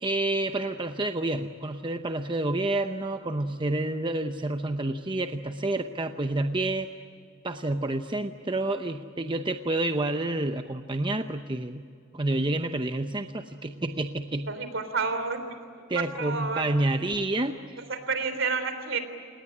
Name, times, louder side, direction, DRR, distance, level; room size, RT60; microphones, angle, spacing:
voice 1, 0.0-6.9 7.4-11.8 12.1-14.5 15.9-17.8, right 2 dB, 25° right, 7 dB, 0.8 m, -29 dB
voice 2, 14.5-15.4 16.2-16.6 17.9-19.0, right 4 dB, 65° right, 9 dB, 3.5 m, -29 dB
28.0 x 19.5 x 9.9 m, 2.3 s
head